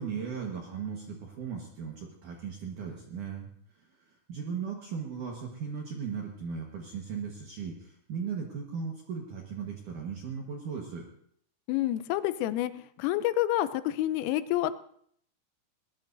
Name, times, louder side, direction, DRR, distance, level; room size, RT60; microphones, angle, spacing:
voice 1, 0.0-3.5 3.8-11.0, right 6 dB, 65° right, 0 dB, 2.0 m, -37 dB
voice 2, 11.7-14.7, left 14 dB, 90° left, 13 dB, 3.3 m, -28 dB
21.0 x 19.5 x 2.7 m, 0.65 s
omnidirectional pair, 5.7 m